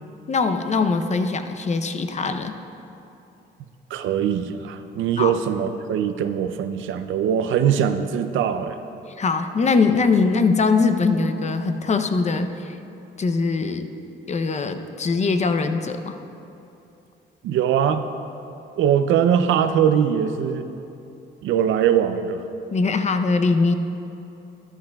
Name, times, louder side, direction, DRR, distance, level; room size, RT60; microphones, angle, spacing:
voice 1, 0.3-2.5 5.2-5.4 9.2-12.8 13.2-13.9 14.3-16.2 22.7-23.7, left 4 dB, 35° left, 8 dB, 0.6 m, -21 dB
voice 2, 3.9-8.8 17.4-18.0 18.8-20.7 21.4-22.4, right 8 dB, 75° right, 9 dB, 0.5 m, -21 dB
13.5 x 11.0 x 2.3 m, 2.8 s
cardioid pair, 90°, 20 cm